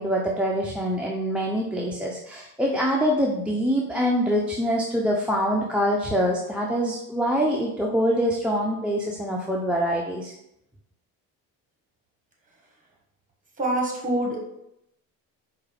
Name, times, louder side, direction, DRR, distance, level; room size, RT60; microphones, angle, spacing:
voice 1, 0.0-10.3, equal, 5° right, -2 dB, 0.4 m, -24 dB
voice 2, 13.6-14.4, right 1 dB, 20° right, -1 dB, 1.4 m, -25 dB
4.7 x 2.4 x 3.3 m, 0.81 s
supercardioid pair, 85°, 36 cm